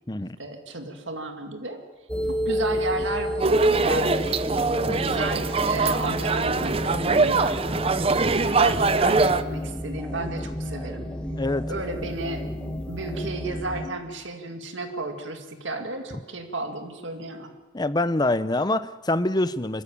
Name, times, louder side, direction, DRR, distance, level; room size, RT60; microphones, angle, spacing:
voice 1, 0.4-1.8 2.3-4.4 4.8-7.6 8.4-11.1 11.7-12.5 12.9-17.5, right 2 dB, 70° right, 5 dB, 2.2 m, -33 dB
sound 1, 2.1-13.9, equal, 5° left, 1.5 m, -31 dB
sound 2, 3.4-9.4, right 3 dB, 30° right, 0.6 m, -22 dB
voice 2, 17.7-19.8, left 2 dB, 20° left, 13 dB, 0.6 m, -25 dB
25.5 x 13.5 x 8.6 m, 1.3 s
head